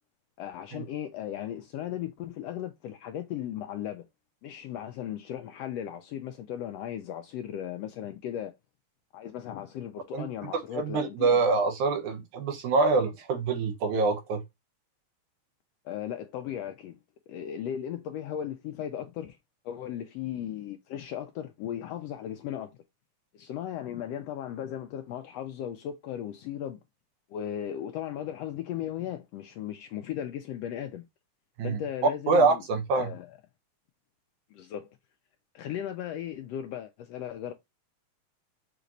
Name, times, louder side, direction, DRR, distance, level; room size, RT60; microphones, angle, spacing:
voice 1, 0.4-4.0 4.4-8.5 9.1-11.4 15.8-17.0 17.3-19.4 19.6-22.8 23.3-26.8 27.3-31.0 31.6-32.6 32.9-33.4 34.5-34.9 35.5-37.5, left 10 dB, 80° left, 1.5 m, -36 dB
voice 2, 10.7-14.4 31.6-31.8 32.3-33.1, right 4 dB, 85° right, 2.5 m, -25 dB
6.6 x 3.0 x 2.6 m
omnidirectional pair, 3.4 m